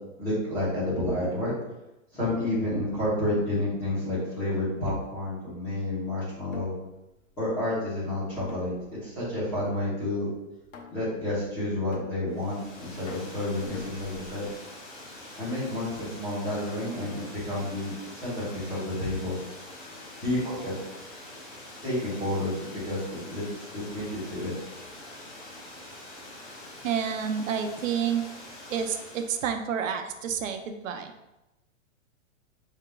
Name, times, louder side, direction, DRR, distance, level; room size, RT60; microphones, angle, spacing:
voice 1, 0.2-1.5 2.1-6.7 7.4-8.7 9.0-10.3 10.9-14.4 15.4-19.4 20.2-20.7 21.8-24.5, left 1 dB, 5° left, -11 dB, 0.7 m, -30 dB
sound 1, 4.9-5.2 6.5-7.6 8.3-9.2 9.5-9.9 10.7-11.2 11.9-12.6 13.1-14.5, left 4 dB, 75° left, 1.0 m, -44 dB
Water, 12.3-29.5, left 1 dB, 40° left, 1.2 m, -45 dB
voice 2, 26.8-28.2 28.7-31.1, right 7 dB, 75° right, 7 dB, 0.6 m, -29 dB
4.6 x 3.6 x 2.2 m, 0.96 s
hypercardioid pair, 175°, 39 cm